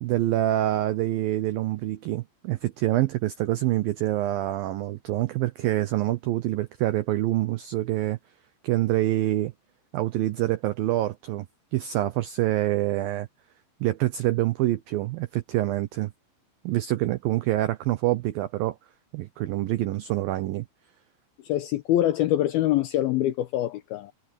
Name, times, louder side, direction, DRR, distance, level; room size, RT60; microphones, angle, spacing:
voice 1, 0.0-8.2 8.6-9.5 9.9-11.5 11.7-13.3 13.8-16.1 16.6-18.8 19.1-20.7, right 15 dB, 85° right, 2.0 m, -26 dB
voice 2, 21.4-24.1, left 13 dB, 80° left, 2.2 m, -24 dB
omnidirectional pair, 5.2 m